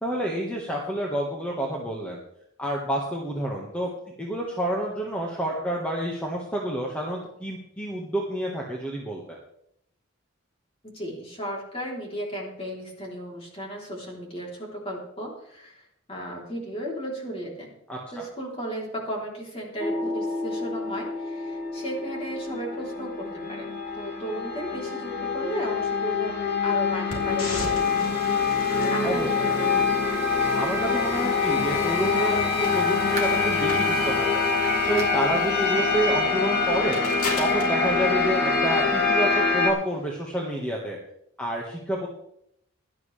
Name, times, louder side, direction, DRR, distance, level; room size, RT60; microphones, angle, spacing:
voice 1, 0.0-2.2 2.6-3.9 4.2-9.4 17.9-18.2 29.0-29.3 30.5-34.4 34.9-37.0 37.4-41.0 41.4-42.1, right 1 dB, 5° left, -2 dB, 1.6 m, -29 dB
voice 2, 10.8-17.7 18.1-28.6 28.9-30.0, equal, 25° left, -2 dB, 3.5 m, -35 dB
sound 1, 19.8-39.7, left 4 dB, 45° left, 2.2 m, -25 dB
sound 2, 27.1-39.1, left 1 dB, 90° left, 3.6 m, -34 dB
sound 3, 33.2-33.6 34.1-34.2 35.0-35.3 35.6-35.7 36.2-36.3 37.4-37.5, right 6 dB, 30° right, 1.4 m, -40 dB
17.0 x 12.0 x 3.4 m, 0.73 s
head